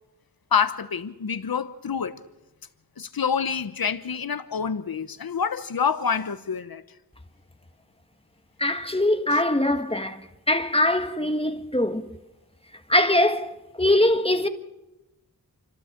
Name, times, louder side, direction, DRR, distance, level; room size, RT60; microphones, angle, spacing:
voice 1, 0.5-2.2 3.0-6.8 9.3-9.4, left 6 dB, 80° left, 1.1 m, -27 dB
voice 2, 8.6-10.2 10.5-12.1 12.9-14.5, left 1 dB, 15° left, 1.7 m, -22 dB
29.0 x 12.5 x 7.3 m
cardioid pair, 45°, 35 cm